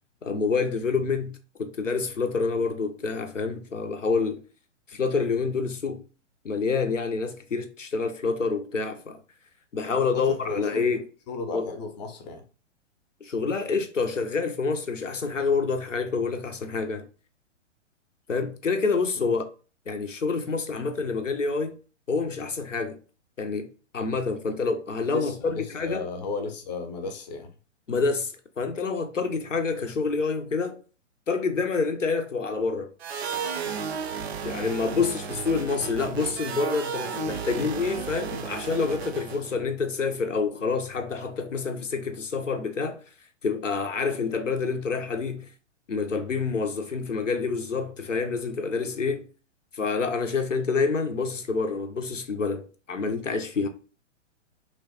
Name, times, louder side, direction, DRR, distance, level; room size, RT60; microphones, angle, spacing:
voice 1, 0.2-4.4 4.9-6.0 6.4-9.2 9.7-11.0 11.5-11.7 13.2-17.1 18.3-19.5 19.9-21.8 22.1-23.0 23.4-26.1 27.9-30.8 31.3-32.9 34.4-43.0 43.4-45.5 45.9-49.3 49.7-53.7, left 4 dB, 90° left, 0.6 m, -27 dB
voice 2, 9.9-11.0 11.3-12.4 19.2-19.3 25.1-27.5 35.0-35.1, left 4 dB, 35° left, 0.6 m, -35 dB
sound 1, 33.0-39.6, right 6 dB, 60° right, 0.4 m, -33 dB
3.0 x 2.1 x 2.8 m
figure-of-eight pair, 115°, 37 cm